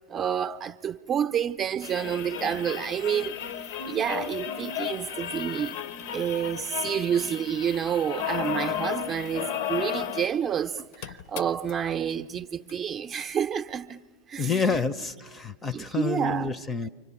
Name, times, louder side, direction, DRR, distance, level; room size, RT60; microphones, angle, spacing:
voice 1, 0.1-3.4 3.9-5.8 6.1-14.0 14.3-14.9 15.7-16.6, right 8 dB, 25° right, 0.7 m, -29 dB
sound 1, 1.8-10.4 10.7-10.8 10.9-11.7 12.7-12.8, left 9 dB, 50° left, 0.8 m, -34 dB
voice 2, 14.4-16.9, left 4 dB, 15° left, 0.7 m, -28 dB
30.0 x 25.5 x 7.1 m
figure-of-eight pair, 90°, 0 cm